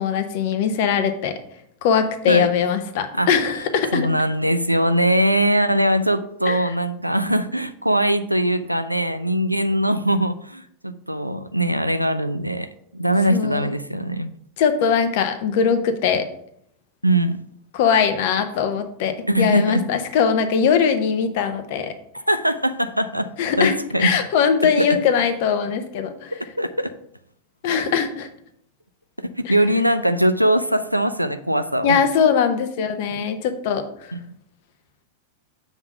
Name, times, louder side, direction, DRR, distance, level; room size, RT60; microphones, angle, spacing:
voice 1, 0.0-1.4 1.8-4.1 6.5-6.7 13.3-13.7 14.6-16.3 17.7-21.9 23.4-26.3 27.6-28.3 29.4-29.5 31.8-33.8, left 7 dB, 50° left, 9 dB, 0.7 m, -21 dB
voice 2, 3.9-12.7 12.9-14.3 17.0-17.4 19.3-19.8 22.3-23.3 23.6-24.1 24.8-24.9 26.3-26.9 29.2-32.0 34.1-34.2, right 1 dB, 90° right, 11 dB, 0.3 m, -21 dB
7.0 x 3.7 x 5.5 m, 0.70 s
figure-of-eight pair, 90°, 0 cm